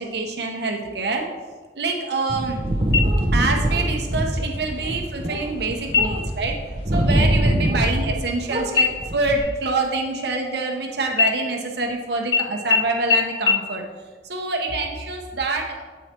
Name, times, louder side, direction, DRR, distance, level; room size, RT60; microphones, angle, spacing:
voice 1, 0.0-1.3 1.7-2.6 3.3-6.6 6.9-13.8 14.3-15.8, right 3 dB, 65° right, 1 dB, 1.0 m, -26 dB
sound 1, 2.3-8.2 8.5-9.4, right 1 dB, 30° right, 0.8 m, -23 dB
sound 2, 2.9-3.6 4.0-4.1 4.6-5.2 5.9-6.4 6.8-7.0 7.3-8.4 8.8-10.8 11.1-11.9 12.3-12.4 12.7-12.8 13.1-13.2 13.5-13.6, left 5 dB, 65° left, 0.7 m, -23 dB
8.4 x 4.8 x 4.4 m, 1.3 s
head